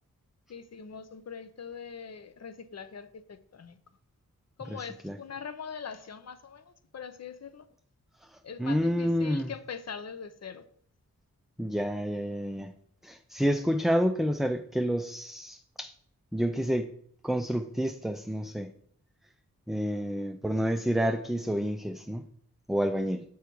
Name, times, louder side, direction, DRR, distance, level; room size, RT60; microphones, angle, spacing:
voice 1, 0.5-3.8 4.6-7.6 8.4-10.6, left 6 dB, 50° left, 12 dB, 0.7 m, -42 dB
voice 2, 4.7-5.2 8.2-9.5 11.6-12.7 13.0-15.9 16.3-16.9 17.2-18.7 19.7-22.3 22.7-23.2, equal, ahead, 6 dB, 0.4 m, -29 dB
6.8 x 4.7 x 4.6 m, 0.63 s
cardioid pair, 65°, 33 cm